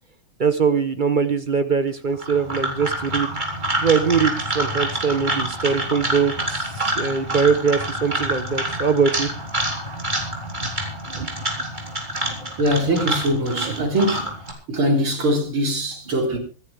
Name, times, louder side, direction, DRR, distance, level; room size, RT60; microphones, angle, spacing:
voice 1, 0.4-3.3 3.8-9.3 10.6-10.7 11.1-11.3 13.6-13.8 16.2-16.4, right 6 dB, 45° right, 0.6 m, -22 dB
sound 1, 2.1-14.5, right 1 dB, 20° right, 3.9 m, -27 dB
voice 2, 12.6-14.3 14.7-16.4, right 1 dB, 70° right, 4.6 m, -22 dB
25.5 x 10.5 x 3.5 m
omnidirectional pair, 2.4 m